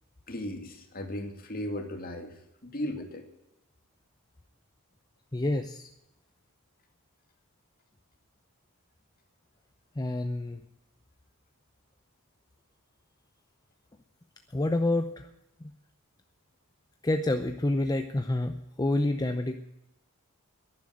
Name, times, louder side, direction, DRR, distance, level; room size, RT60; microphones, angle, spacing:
voice 1, 0.3-2.4 2.6-3.3, left 1 dB, 40° left, 5 dB, 2.3 m, -36 dB
voice 2, 5.3-5.9 10.0-10.6 14.5-15.3 17.0-19.6, left 2 dB, 15° left, 7 dB, 0.6 m, -28 dB
11.5 x 10.5 x 9.2 m, 0.86 s
head